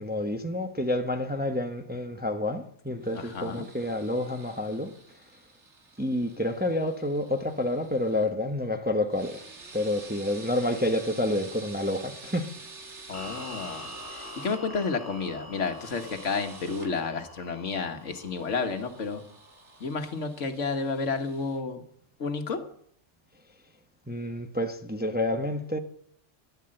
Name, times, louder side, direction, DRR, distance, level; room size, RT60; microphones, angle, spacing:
voice 1, 0.0-4.9 6.0-9.4 9.7-12.5 24.1-25.8, left 1 dB, 10° right, 0.8 m, -29 dB
sound 1, 3.0-8.3 9.1-14.6 15.7-16.9 17.9-21.6, right 3 dB, 65° right, 2.2 m, -49 dB
voice 2, 3.1-3.6 13.1-13.8 14.1-19.2 19.8-21.8 22.2-22.6, left 4 dB, 70° left, 1.7 m, -31 dB
sound 2, 13.1-20.3, left 1 dB, 10° left, 3.0 m, -45 dB
12.5 x 11.0 x 7.7 m
omnidirectional pair, 1.3 m